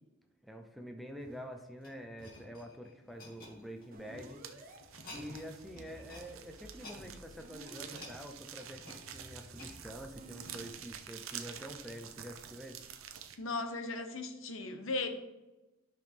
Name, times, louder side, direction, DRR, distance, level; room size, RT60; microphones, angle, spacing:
voice 1, 0.4-4.4 5.1-12.8, equal, ahead, 3 dB, 0.6 m, -47 dB
sound 1, 1.2-4.3 4.8-5.5 5.8-6.3 6.6-10.8 11.4-11.6, left 2 dB, 45° left, 2.3 m, -53 dB
sound 2, 3.4-3.7 4.0-13.4, right 9 dB, 80° right, 0.7 m, -49 dB
sound 3, 3.9-4.8 5.6-8.2 9.0-10.7, right 1 dB, 45° right, 1.2 m, -54 dB
voice 2, 13.4-15.1, left 3 dB, 75° left, 7 dB, 1.0 m, -37 dB
11.5 x 6.0 x 3.5 m, 1.1 s
head